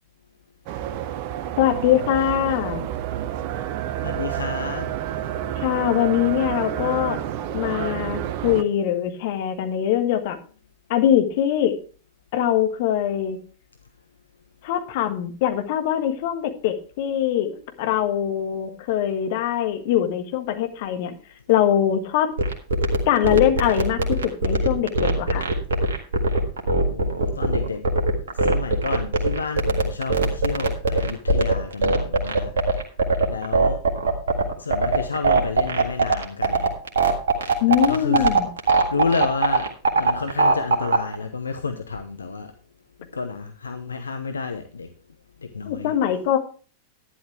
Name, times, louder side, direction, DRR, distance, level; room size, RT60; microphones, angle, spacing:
sound 1, 0.7-8.6, right 11 dB, 45° right, 0.9 m, -29 dB
voice 1, 1.6-2.9 5.6-7.2 7.5-10.4 10.9-11.7 12.3-13.4 14.6-21.1 21.5-22.3 23.1-25.4 37.6-38.5 45.6-46.4, left 11 dB, 50° left, 1.6 m, -22 dB
voice 2, 4.0-4.9 26.9-27.8 28.3-32.5 33.3-33.8 34.6-36.7 37.7-38.3 38.6-42.5 43.1-44.9 45.4-45.9, left 4 dB, 75° left, 0.8 m, -30 dB
sound 2, 22.4-41.1, right 3 dB, 65° right, 1.7 m, -20 dB
11.5 x 10.5 x 3.3 m
figure-of-eight pair, 90°, 0 cm